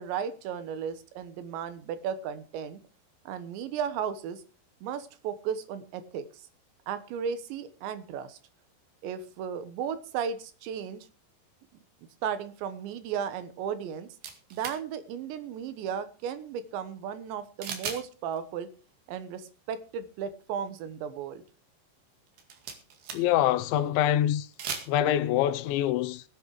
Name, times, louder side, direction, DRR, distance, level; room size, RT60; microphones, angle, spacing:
voice 1, 0.0-2.8 3.3-4.4 4.8-6.2 6.9-8.4 9.0-11.1 12.2-14.1 14.5-18.7 19.1-21.4, right 8 dB, 80° right, 3.4 m, -35 dB
sound 1, 14.2-14.8 17.6-18.0 18.3-18.4 22.3-23.4 24.4-24.9, right 6 dB, 65° right, 3.8 m, -37 dB
voice 2, 23.1-24.5 24.9-26.2, left 12 dB, 85° left, 3.1 m, -25 dB
19.0 x 8.4 x 4.8 m
omnidirectional pair, 5.2 m